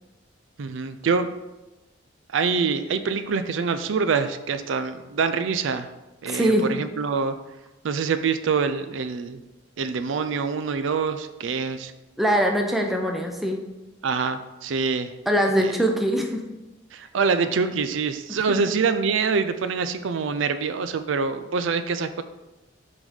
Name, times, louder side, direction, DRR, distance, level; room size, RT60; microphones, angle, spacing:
voice 1, 0.6-1.3 2.3-5.9 6.2-7.4 7.8-9.4 9.8-11.9 14.0-15.1 15.6-15.8 16.9-22.2, right 5 dB, 75° right, 10 dB, 0.4 m, -25 dB
voice 2, 6.3-6.7 12.2-13.6 15.3-16.4 18.5-18.7, equal, ahead, 2 dB, 0.6 m, -22 dB
6.1 x 4.0 x 5.0 m, 1.0 s
head